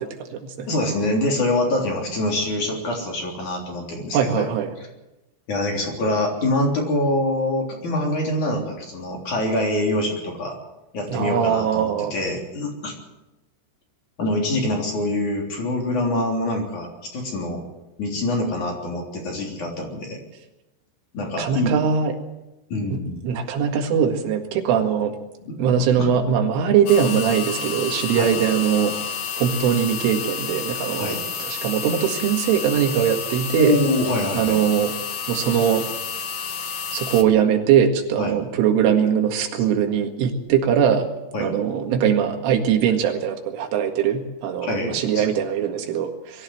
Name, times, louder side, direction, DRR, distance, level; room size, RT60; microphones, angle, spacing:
voice 1, 0.0-0.7 4.1-4.7 11.1-12.1 21.4-22.2 22.9-23.0 23.2-25.1 25.6-28.9 29.4-33.8 34.4-34.9 35.3-35.9 36.9-41.1 41.4-46.4, right 8 dB, 85° right, 4 dB, 4.4 m, -21 dB
voice 2, 0.7-4.5 5.5-10.6 10.9-12.9 14.2-17.6 18.0-20.2 21.1-21.8 22.7-23.2 25.4-25.7 28.2-28.3 31.0-31.2 33.5-34.6 38.2-38.4 39.5-39.6 41.3-41.5 44.6-45.3, left 1 dB, 40° left, 0 dB, 4.5 m, -25 dB
sound 1, 26.9-37.2, left 6 dB, 75° left, 1.7 m, -30 dB
22.5 x 14.5 x 7.9 m, 0.98 s
omnidirectional pair, 5.5 m